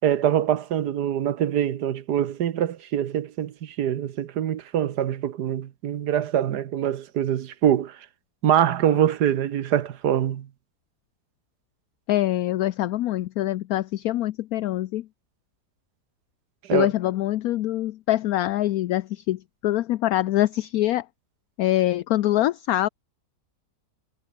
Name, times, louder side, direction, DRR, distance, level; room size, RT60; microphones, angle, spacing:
voice 1, 0.0-8.0 8.4-10.5 16.7-16.9, right 10 dB, 80° right, 1.6 m, -24 dB
voice 2, 12.1-15.1 16.7-21.0 21.6-22.9, left 14 dB, 70° left, 1.0 m, -24 dB
omnidirectional pair, 1.7 m